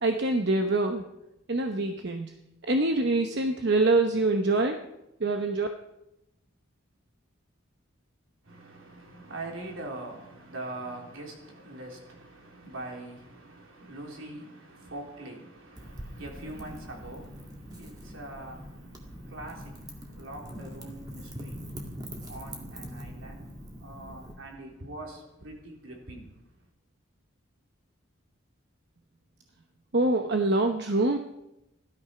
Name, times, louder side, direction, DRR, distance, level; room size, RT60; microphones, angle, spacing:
voice 1, 0.0-1.0 1.5-2.3 2.6-4.8 5.2-5.7 29.9-31.2, right 2 dB, 55° right, 0.9 m, -25 dB
voice 2, 8.4-26.3, right 2 dB, 80° right, 3.8 m, -43 dB
Wind / Fire, 15.8-24.3, equal, 20° right, 2.2 m, -43 dB
16.5 x 12.5 x 5.9 m
head